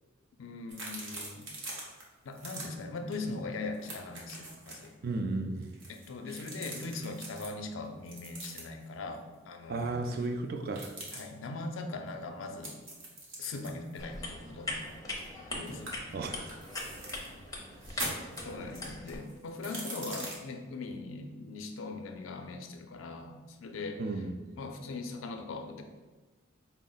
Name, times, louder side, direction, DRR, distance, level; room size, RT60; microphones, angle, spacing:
voice 1, 0.4-1.5 2.2-4.9 5.9-10.3 11.1-12.7 13.4-14.9 15.5-16.0 18.4-24.3 24.6-25.8, left 3 dB, 75° left, 5 dB, 0.4 m, -40 dB
sound 1, 0.7-2.0 2.3-2.7 3.1-3.3 3.5-4.9 5.6-7.5 8.1-8.9 10.7-11.2 12.6-15.4 15.7-17.3 17.8-20.3, right 2 dB, 70° right, 1.0 m, -43 dB
voice 2, 5.0-5.7 9.7-10.9 16.1-16.5 17.9-18.1 24.0-24.3, right 3 dB, 50° right, 6 dB, 0.4 m, -34 dB
sound 2, 14.0-19.2, left 2 dB, 20° left, 0.5 m, -41 dB
4.2 x 2.1 x 3.8 m, 1.3 s
head